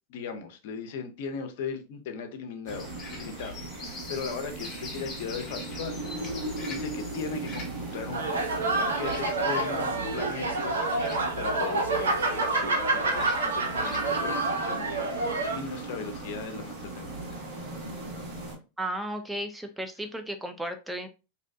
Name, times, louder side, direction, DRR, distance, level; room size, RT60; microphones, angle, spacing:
voice 1, 0.1-8.3 8.8-10.8 11.1-17.5, left 5 dB, 60° left, 0.6 m, -38 dB
sound 1, 2.7-14.3, left 3 dB, 30° left, 0.9 m, -44 dB
sound 2, 2.7-18.6, right 2 dB, 50° right, 1.4 m, -39 dB
sound 3, 8.1-15.6, right 2 dB, 85° right, 0.6 m, -28 dB
voice 2, 18.8-21.1, right 1 dB, 5° right, 0.5 m, -34 dB
2.6 x 2.2 x 2.5 m
hypercardioid pair, 100°, 0 cm